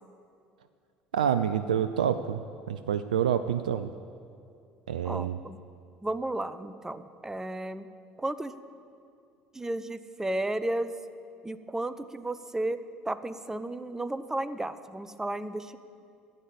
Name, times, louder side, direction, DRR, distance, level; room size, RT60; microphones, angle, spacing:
voice 1, 1.1-3.9 4.9-5.4, right 8 dB, 80° right, 11 dB, 0.4 m, -28 dB
voice 2, 5.0-5.6 6.0-7.9 8.2-8.5 9.5-10.9 11.4-12.8 13.0-15.8, right 1 dB, 10° right, 13 dB, 0.7 m, -33 dB
14.5 x 9.3 x 7.1 m, 2.4 s
hypercardioid pair, 65°, 4 cm